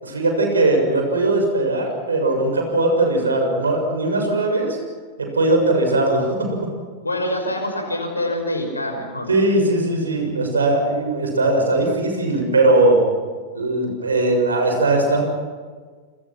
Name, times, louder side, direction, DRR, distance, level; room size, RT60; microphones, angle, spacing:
voice 1, 0.0-4.8 5.2-6.5 9.3-13.0 13.5-15.2, right 2 dB, 75° right, 3 dB, 6.9 m, -19 dB
voice 2, 7.0-9.3, left 1 dB, 80° left, 5 dB, 5.7 m, -25 dB
29.0 x 26.5 x 6.1 m, 1.5 s
figure-of-eight pair, 90°, 0 cm